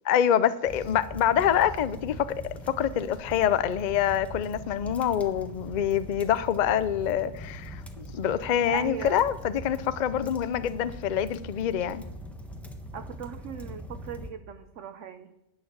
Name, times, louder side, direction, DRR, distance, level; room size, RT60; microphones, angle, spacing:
voice 1, 0.0-2.3 2.7-12.0, left 9 dB, 65° left, 0.4 m, -26 dB
sound 1, 0.7-14.3, equal, ahead, 1.2 m, -42 dB
voice 2, 8.7-9.2 12.9-15.3, right 7 dB, 60° right, 1.0 m, -38 dB
11.5 x 9.1 x 7.3 m
omnidirectional pair, 1.6 m